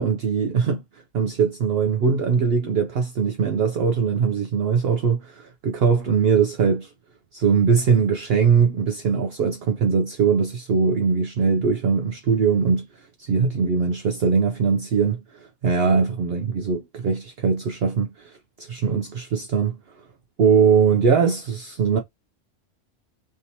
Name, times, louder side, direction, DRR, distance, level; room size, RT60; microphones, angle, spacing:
voice 1, 0.0-6.9 7.3-19.8 20.4-22.0, right 6 dB, 60° right, 0.8 m, -21 dB
3.4 x 2.8 x 2.7 m
omnidirectional pair, 1.3 m